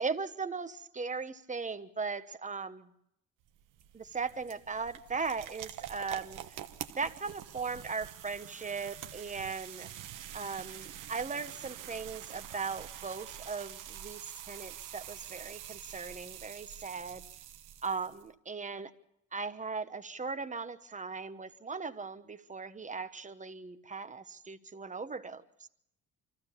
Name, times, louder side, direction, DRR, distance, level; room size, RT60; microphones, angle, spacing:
voice 1, 0.0-2.9 3.9-6.4 7.0-9.9 10.3-17.2 17.8-18.9 19.3-25.7, right 4 dB, 25° right, 10 dB, 1.1 m, -38 dB
sound 1, 3.4-18.3, right 11 dB, 90° right, 1.1 m, -46 dB
25.0 x 15.0 x 7.1 m, 0.77 s
cardioid pair, 90°, 30 cm